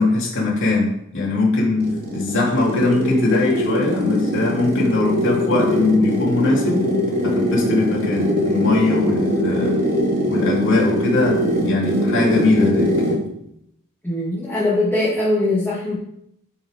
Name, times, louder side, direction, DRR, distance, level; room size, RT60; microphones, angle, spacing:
voice 1, 0.0-7.0 7.2-9.8 10.3-13.0, left 2 dB, 60° left, -3 dB, 3.0 m, -20 dB
sound 1, 1.5-13.3, equal, 45° right, 3.1 m, -22 dB
voice 2, 14.0-16.0, left 2 dB, 10° left, -7 dB, 2.2 m, -21 dB
11.5 x 5.5 x 5.3 m, 0.75 s
head